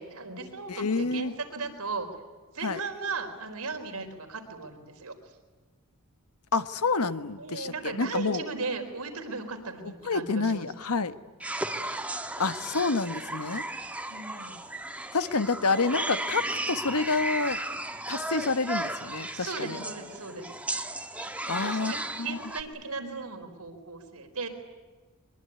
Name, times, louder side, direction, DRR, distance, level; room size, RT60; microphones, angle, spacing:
voice 1, 0.0-2.1 2.5-5.1 7.4-10.7 14.1-14.6 19.3-20.5 21.5-22.0 22.2-24.5, right 4 dB, 85° right, 6 dB, 4.4 m, -37 dB
voice 2, 0.7-1.3 2.6-2.8 6.5-8.4 9.8-11.1 12.4-13.6 15.1-17.6 18.1-19.8 21.5-22.4, left 3 dB, 90° left, 11 dB, 1.3 m, -28 dB
sound 1, 11.4-22.6, right 1 dB, 5° right, 1.4 m, -35 dB
23.5 x 22.5 x 9.6 m, 1.3 s
head